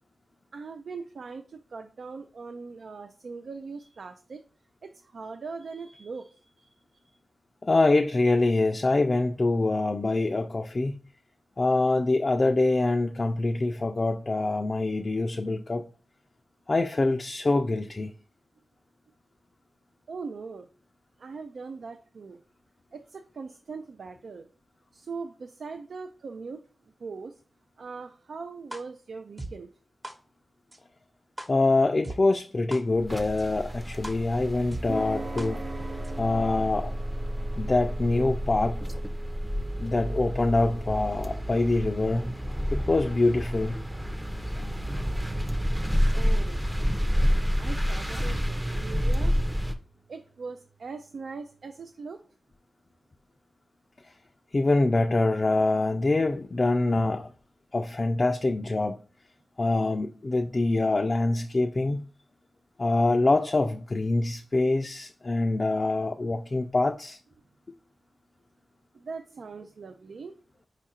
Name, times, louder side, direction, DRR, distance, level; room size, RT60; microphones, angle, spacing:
voice 1, 0.5-4.4 4.8-6.7 20.1-20.7 21.2-22.4 22.9-24.5 24.9-26.6 27.0-27.4 27.8-29.7 46.1-46.7 47.5-49.3 50.1-52.2 68.9-70.4, right 4 dB, 80° right, 0.3 m, -40 dB
voice 2, 7.6-11.0 11.6-15.8 16.7-18.1 31.5-35.6 36.2-36.9 37.6-38.8 39.8-42.3 42.7-43.8 54.5-57.3 57.7-59.0 59.6-62.1 62.8-67.2, left 2 dB, 45° left, 0.3 m, -25 dB
sound 1, 28.7-28.8 29.4-29.5 30.0-30.1 30.7-30.8 31.4-31.5 32.0-32.2 32.7-32.8 33.4-33.5 34.0-34.1 34.7-34.8 35.4-35.5 36.0-36.1, right 1 dB, 30° right, 0.9 m, -37 dB
sound 2, 32.9-49.7, equal, 10° right, 0.5 m, -29 dB
sound 3, 34.9-51.4, right 3 dB, 55° right, 0.9 m, -45 dB
4.6 x 2.4 x 4.2 m
cardioid pair, 60°, 0 cm